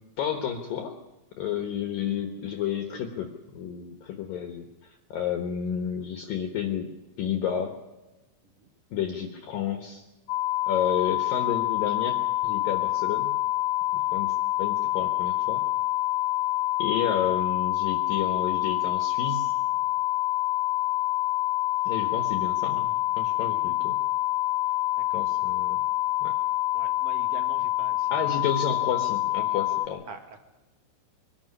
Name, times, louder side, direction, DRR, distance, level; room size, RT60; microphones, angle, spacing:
voice 1, 0.2-1.0 1.4-6.9 7.2-7.8 8.9-10.0 10.7-12.2 12.4-13.3 13.9-15.6 16.8-19.5 21.9-24.0 25.1-25.8 26.2-26.4 28.1-30.0, left 8 dB, 65° left, 5 dB, 2.4 m, -31 dB
sound 1, 10.3-29.9, left 15 dB, 85° left, 3.3 m, -26 dB
voice 2, 24.7-25.3 26.7-28.3 30.1-30.4, right 5 dB, 55° right, 6 dB, 1.7 m, -46 dB
23.5 x 12.5 x 9.8 m, 1.1 s
omnidirectional pair, 5.4 m